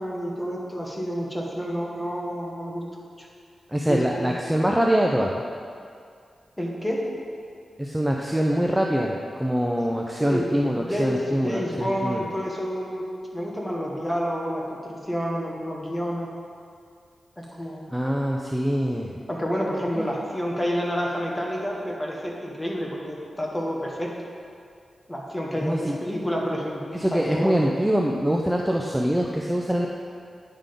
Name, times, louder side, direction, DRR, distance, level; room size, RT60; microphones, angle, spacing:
voice 1, 0.0-2.8 3.2-3.3 3.9-4.3 6.6-7.1 10.2-16.3 17.4-17.9 19.3-24.3 25.1-27.6, equal, 15° left, -2 dB, 1.4 m, -29 dB
voice 2, 3.7-5.3 7.8-12.2 17.9-19.1 19.9-20.1 25.6-26.0 26.9-29.9, equal, 5° right, -1 dB, 0.5 m, -24 dB
9.8 x 3.8 x 5.2 m, 2.3 s
cardioid pair, 70°, 0 cm